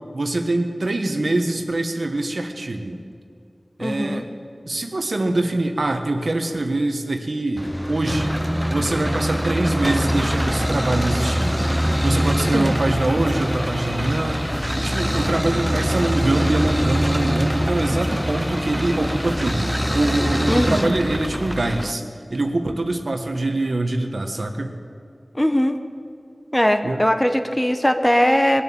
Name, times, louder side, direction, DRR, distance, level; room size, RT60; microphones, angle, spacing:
voice 1, 0.0-3.0 3.8-4.3 4.6-8.3 8.7-11.7 12.0-14.4 14.7-22.0 22.3-24.7 26.8-27.0, right 2 dB, 75° right, 5 dB, 1.3 m, -24 dB
voice 2, 3.8-4.3 12.5-12.8 20.5-20.9 25.3-25.8 26.5-28.6, equal, 15° left, 7 dB, 1.0 m, -20 dB
sound 1, 7.6-21.9, equal, ahead, 0.6 m, -23 dB
21.0 x 7.1 x 8.6 m, 2.3 s
wide cardioid pair, 45°, 0 cm